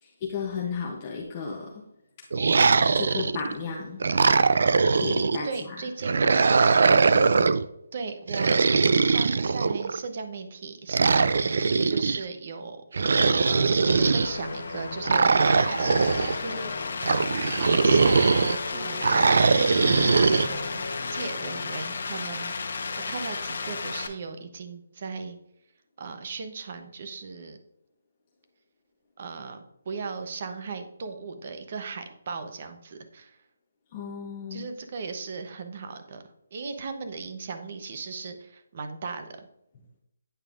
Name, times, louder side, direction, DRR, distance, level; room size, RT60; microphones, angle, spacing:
voice 1, 0.0-1.8 2.9-4.0 5.0-5.8 33.9-34.7, left 5 dB, 20° left, -1 dB, 0.7 m, -34 dB
sound 1, 2.3-3.5 4.0-5.4 6.0-7.6 8.3-10.0 10.9-12.2 12.9-14.3 15.0-16.4 17.0-18.6 19.0-20.5, right 4 dB, 55° right, 0.3 m, -21 dB
voice 2, 5.4-6.3 7.9-12.8 13.5-16.7 17.5-25.4 26.0-27.6 29.2-33.4 34.5-36.2 36.5-39.5, right 4 dB, 35° right, 7 dB, 0.7 m, -37 dB
sound 2, 13.8-21.8, left 3 dB, 80° left, 1.5 m, -38 dB
sound 3, 14.1-24.1, left 4 dB, 55° left, 0.9 m, -34 dB
8.9 x 5.2 x 2.4 m, 0.80 s
hypercardioid pair, 175°, 0 cm